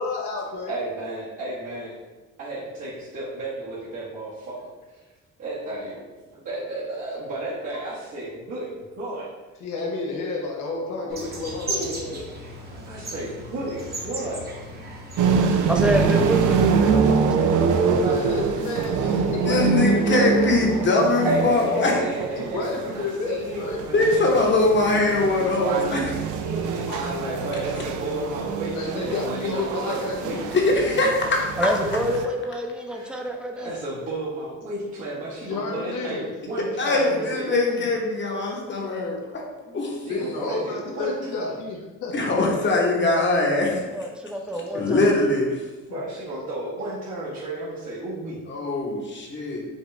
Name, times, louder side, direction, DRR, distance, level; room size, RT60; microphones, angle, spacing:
voice 1, 0.0-0.7 7.7-7.9 9.6-12.3 18.0-20.3 22.4-23.8 26.9-27.0 28.7-30.5 35.4-36.2 40.1-42.1 45.9-46.0, left 3 dB, 90° left, -1 dB, 0.8 m, -31 dB
voice 2, 0.7-1.9 2.4-4.7 5.4-6.0 6.4-9.3 11.7-11.9 12.9-14.5 17.6-18.6 18.9-20.3 21.2-24.7 25.7-26.1 26.4-30.5 32.9-33.3 33.5-37.9 39.6-41.6 45.9-48.4, right 1 dB, 65° right, -9 dB, 1.3 m, -33 dB
sound 1, 11.1-16.4, right 2 dB, 30° right, 0.9 m, -36 dB
sound 2, 15.2-32.2, right 5 dB, 85° right, 0.5 m, -25 dB
voice 3, 15.7-17.8 31.6-33.7 43.9-45.0, equal, 5° right, 2 dB, 0.5 m, -27 dB
voice 4, 19.4-22.0 23.9-26.2 30.5-31.4 36.8-40.0 42.1-43.9 44.7-45.5 48.5-49.6, left 2 dB, 40° left, 0 dB, 1.0 m, -22 dB
5.2 x 2.4 x 3.1 m, 1.2 s
cardioid pair, 90°, 30 cm